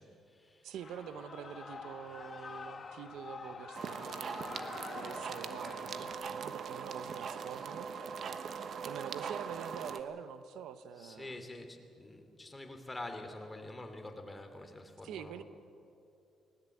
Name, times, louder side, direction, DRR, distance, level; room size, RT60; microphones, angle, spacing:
voice 1, 0.0-0.7 11.0-15.4, left 2 dB, 15° left, 6 dB, 2.8 m, -46 dB
voice 2, 0.6-4.6 4.9-7.9 8.8-11.4 15.0-15.4, right 8 dB, 80° right, 12 dB, 0.9 m, -46 dB
Shout / Cheering, 0.7-6.1, left 4 dB, 40° left, 1.7 m, -47 dB
sound 1, 3.7-10.0, right 6 dB, 60° right, 1.2 m, -41 dB
sound 2, 4.5-8.5, equal, 30° right, 4.8 m, -60 dB
19.5 x 19.0 x 8.5 m, 2.7 s
cardioid pair, 90°, 0 cm